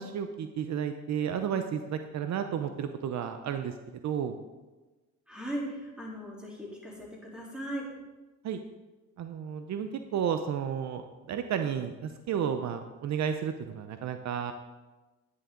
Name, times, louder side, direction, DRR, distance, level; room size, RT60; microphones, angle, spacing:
voice 1, 0.0-3.7 4.0-4.4 8.4-8.6 9.2-14.5, right 8 dB, 65° right, 8 dB, 0.7 m, -32 dB
voice 2, 5.3-7.8, right 1 dB, 5° right, -4 dB, 3.5 m, -38 dB
10.0 x 9.6 x 3.8 m, 1.2 s
cardioid pair, 90°, 30 cm